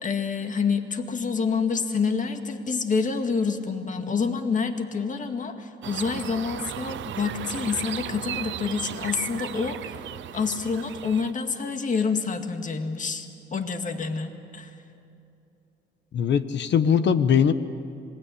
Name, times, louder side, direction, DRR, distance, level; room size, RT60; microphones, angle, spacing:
voice 1, 0.0-10.0 10.3-14.7, left 5 dB, 40° left, 6 dB, 2.1 m, -27 dB
sound 1, 5.8-11.3, right 11 dB, 70° right, 0.8 m, -36 dB
voice 2, 16.1-17.5, left 7 dB, 65° left, 12 dB, 1.3 m, -21 dB
26.5 x 20.0 x 8.6 m, 2.7 s
cardioid pair, 90°, 20 cm